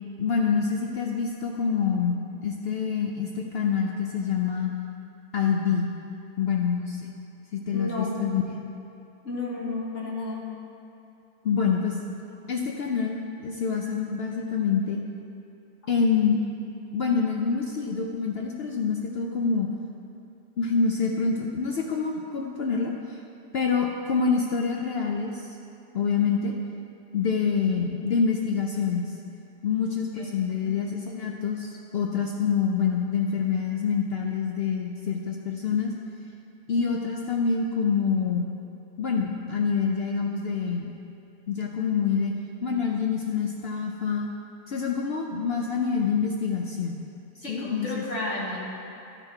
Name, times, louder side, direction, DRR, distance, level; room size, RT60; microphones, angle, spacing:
voice 1, 0.2-4.7 5.3-5.9 6.4-7.1 7.5-8.4 11.4-12.0 12.5-15.0 15.9-16.4 16.9-19.7 20.6-23.2 23.5-25.6 25.9-26.5 27.1-29.1 29.6-35.9 36.7-38.5 39.0-40.9 41.5-42.3 42.6-44.3 44.7-47.0 47.5-48.0, left 6 dB, 70° left, 0 dB, 0.6 m, -26 dB
voice 2, 7.7-8.1 9.2-10.4 30.1-30.3 30.6-30.7 47.4-48.6, left 2 dB, 50° left, -4 dB, 1.7 m, -32 dB
12.0 x 6.1 x 4.5 m, 2.7 s
omnidirectional pair, 1.7 m